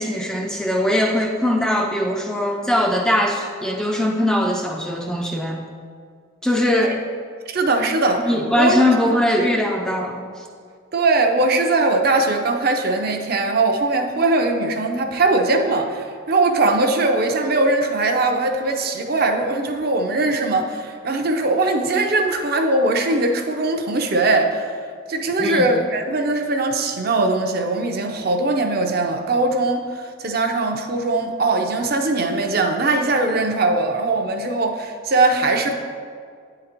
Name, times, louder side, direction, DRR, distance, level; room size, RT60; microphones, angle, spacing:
voice 1, 0.0-5.6 6.4-7.0 8.2-10.5 25.4-25.7, left 1 dB, 5° left, 0 dB, 0.4 m, -21 dB
voice 2, 7.5-8.3 8.6-9.2 10.9-24.7 25.1-35.7, right 2 dB, 50° right, 4 dB, 0.6 m, -20 dB
8.9 x 3.9 x 4.4 m, 2.1 s
head